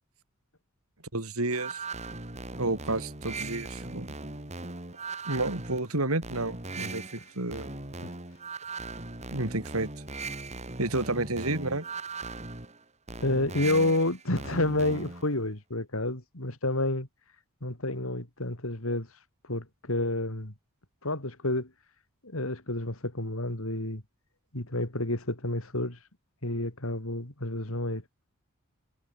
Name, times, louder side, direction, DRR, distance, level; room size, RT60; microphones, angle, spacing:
voice 1, 1.1-1.8 2.6-4.1 5.3-7.7 9.3-9.9 10.8-11.9, right 2 dB, 75° right, 4.0 m, -30 dB
sound 1, 1.5-15.3, right 3 dB, 30° right, 2.4 m, -39 dB
voice 2, 13.2-17.1 17.6-19.1 19.5-20.5 21.0-21.7 22.2-24.0 24.5-26.0 26.4-28.0, left 2 dB, 65° left, 3.7 m, -29 dB
head